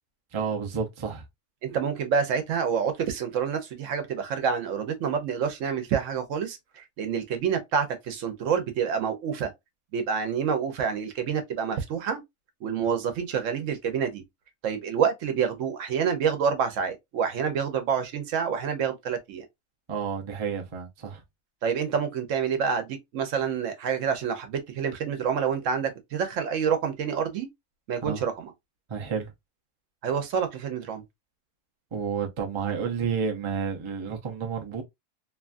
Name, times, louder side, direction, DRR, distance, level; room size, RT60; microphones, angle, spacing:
voice 1, 0.3-1.3 19.9-21.2 28.1-28.2 28.9-29.3 31.9-34.8, right 6 dB, 35° right, 0.5 m, -30 dB
voice 2, 1.6-9.5 9.9-12.2 12.6-14.2 14.6-19.4 21.6-27.5 27.9-28.5 30.0-31.0, right 7 dB, 80° right, 1.1 m, -27 dB
2.9 x 2.3 x 2.4 m
omnidirectional pair, 1.3 m